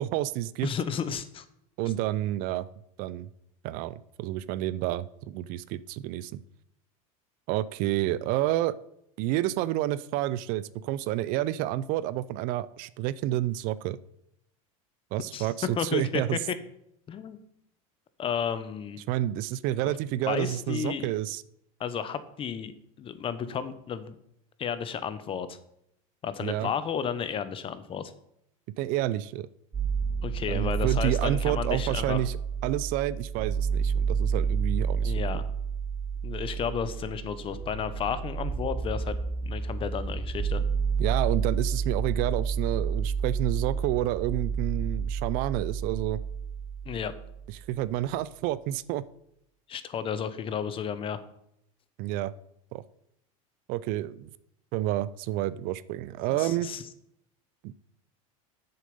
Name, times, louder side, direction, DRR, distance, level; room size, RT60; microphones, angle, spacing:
voice 1, 0.0-0.7 1.8-2.7 3.0-3.3 3.6-6.4 7.5-8.8 9.2-14.0 15.1-16.4 19.1-21.4 26.4-26.7 28.8-29.5 30.5-32.4 32.6-35.2 41.0-46.2 47.5-49.0 52.0-52.3 52.7-52.8 53.7-54.3 54.7-56.7 57.6-57.7, right 14 dB, 55° right, 18 dB, 0.4 m, -29 dB
voice 2, 0.6-1.4 15.3-16.4 17.1-17.4 18.2-19.0 20.3-21.1 21.8-22.7 23.0-24.1 24.6-25.6 26.2-28.1 30.2-32.2 35.0-35.4 36.2-39.2 39.4-40.6 46.9-47.1 49.7-51.2 56.3-56.8, left 7 dB, 30° left, 13 dB, 0.8 m, -32 dB
sound 1, 29.7-47.7, right 6 dB, 25° right, 3.5 m, -30 dB
7.5 x 6.7 x 5.3 m, 0.77 s
supercardioid pair, 115°, 18 cm